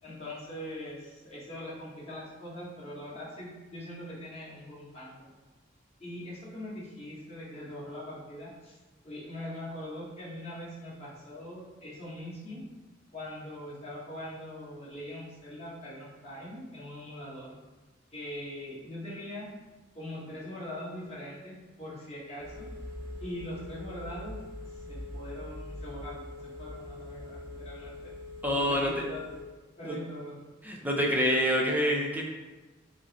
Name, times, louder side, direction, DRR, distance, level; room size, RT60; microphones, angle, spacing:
voice 1, 0.0-5.3 6.0-8.8 9.0-12.6 13.1-17.6 18.1-19.5 19.9-22.7 23.2-24.3 24.7-26.3 26.6-28.1 28.5-29.2 29.8-30.4, left 1 dB, 35° left, -8 dB, 1.4 m, -42 dB
Telephone, 22.4-29.4, left 1 dB, 20° left, 0.9 m, -43 dB
voice 2, 28.4-28.9 29.8-30.0 30.6-32.2, equal, 10° right, -1 dB, 0.5 m, -26 dB
5.0 x 2.1 x 4.1 m, 1.2 s
head